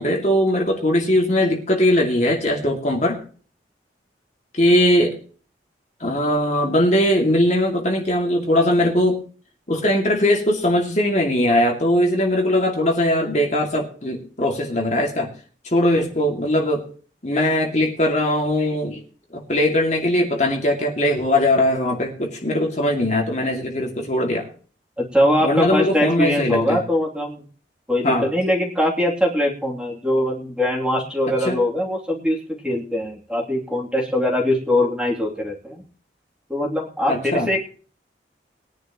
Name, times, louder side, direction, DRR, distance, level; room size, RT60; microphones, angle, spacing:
voice 1, 0.0-3.2 4.5-5.2 6.0-9.2 9.7-15.3 15.6-16.9 17.2-19.0 19.3-24.5 25.4-26.8 28.0-28.3 31.5-31.6 37.1-37.5, left 1 dB, 40° left, 1 dB, 2.4 m, -20 dB
voice 2, 25.0-27.4 27.9-32.4 32.6-35.8 36.5-37.6, left 1 dB, 5° right, -2 dB, 3.0 m, -22 dB
21.0 x 10.5 x 3.1 m, 0.41 s
head